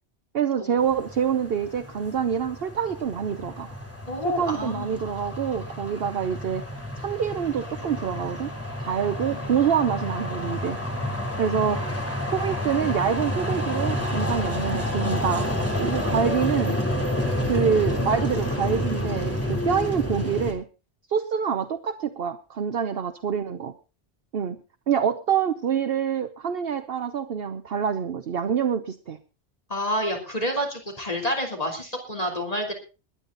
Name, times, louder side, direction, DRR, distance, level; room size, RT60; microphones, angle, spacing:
voice 1, 0.3-3.7 4.2-6.6 7.0-8.5 8.8-10.8 11.4-11.9 12.3-15.5 15.8-16.8 17.5-20.7 21.1-23.7 24.3-24.6 24.9-29.2, right 7 dB, 60° right, 9 dB, 1.0 m, -26 dB
sound 1, 0.8-20.5, left 1 dB, 10° left, 3.3 m, -29 dB
voice 2, 4.1-5.0 9.3-9.5 29.7-32.7, equal, 35° left, 2 dB, 3.3 m, -29 dB
21.0 x 9.8 x 3.9 m, 0.32 s
omnidirectional pair, 1.1 m